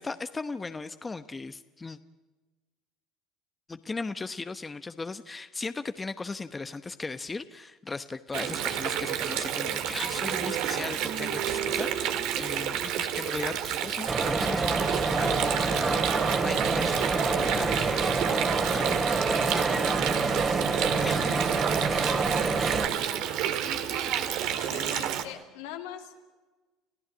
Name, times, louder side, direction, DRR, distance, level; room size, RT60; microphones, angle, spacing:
voice 1, 0.0-2.0 3.7-22.2, left 3 dB, 20° left, 11 dB, 1.0 m, -38 dB
Water, 8.3-25.2, right 10 dB, 65° right, 2.0 m, -30 dB
sound 1, 14.1-22.9, right 3 dB, 25° right, 3.0 m, -27 dB
voice 2, 24.6-26.2, left 10 dB, 75° left, 4 dB, 2.6 m, -41 dB
30.0 x 15.0 x 8.7 m, 1.3 s
hypercardioid pair, 75°, 0 cm